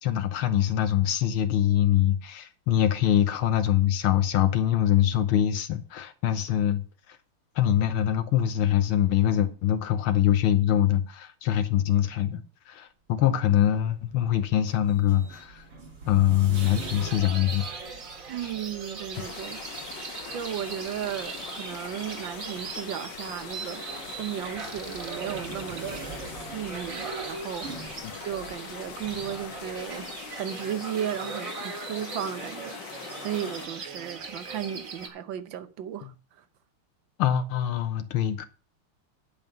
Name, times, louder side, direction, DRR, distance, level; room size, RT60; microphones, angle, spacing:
voice 1, 0.0-7.2 7.5-15.6 16.1-17.7 18.4-18.5 36.0-36.1 37.2-38.4, left 11 dB, 75° left, 1.7 m, -24 dB
sound 1, 13.4-30.5, right 3 dB, 90° right, 4.7 m, -47 dB
sound 2, 16.5-35.1, right 4 dB, 40° right, 1.9 m, -39 dB
voice 2, 18.3-19.6 20.3-23.8 24.2-27.9 28.2-32.8 33.2-36.1, right 10 dB, 65° right, 1.5 m, -35 dB
sound 3, 19.1-33.7, left 8 dB, 60° left, 1.5 m, -42 dB
10.5 x 5.5 x 6.8 m
omnidirectional pair, 2.4 m